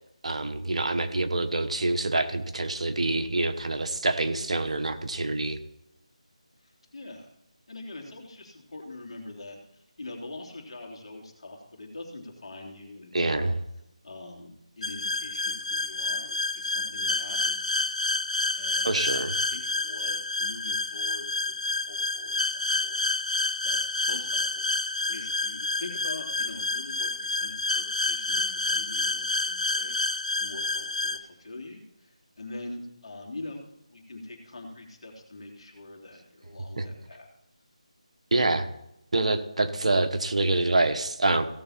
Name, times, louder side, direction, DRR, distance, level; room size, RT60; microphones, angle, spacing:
voice 1, 0.2-5.6 13.1-13.5 18.8-19.3 36.8-36.9 38.3-38.7 39.1-41.4, right 2 dB, 65° right, 8 dB, 1.1 m, -26 dB
voice 2, 6.6-7.3 7.7-13.5 14.0-14.5 14.8-17.8 18.6-23.0 23.6-30.0 30.4-33.6 33.9-37.3, left 2 dB, 55° left, 1 dB, 2.9 m, -44 dB
sound 1, 14.8-31.2, left 3 dB, 75° left, 0.9 m, -29 dB
16.0 x 6.9 x 4.3 m, 0.82 s
figure-of-eight pair, 165°, 4 cm